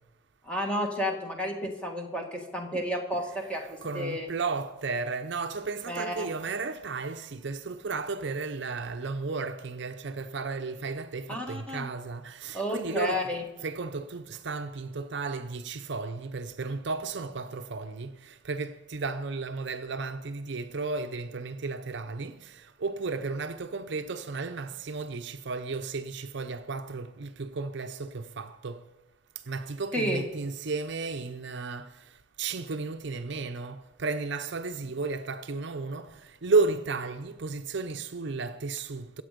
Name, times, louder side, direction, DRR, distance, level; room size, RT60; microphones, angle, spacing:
voice 1, 0.4-4.3 5.9-6.3 11.3-11.9 12.5-13.4 29.9-30.2, equal, 5° left, 1.9 m, -31 dB
voice 2, 3.5-13.3 13.6-28.9 29.4-39.2, right 4 dB, 55° right, 0.6 m, -33 dB
23.5 x 8.1 x 5.1 m
head